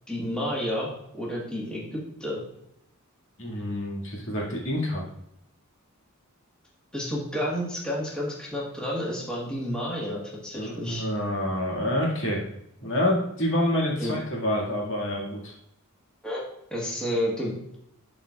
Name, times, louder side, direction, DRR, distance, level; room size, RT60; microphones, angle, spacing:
voice 1, 0.1-2.4 6.9-11.0 14.0-14.1 16.2-16.4 16.7-17.8, equal, 5° left, -5 dB, 1.5 m, -30 dB
voice 2, 3.4-5.0 10.5-12.4 12.8-15.5, left 1 dB, 60° left, -3 dB, 2.1 m, -27 dB
12.0 x 4.3 x 2.4 m, 0.78 s
head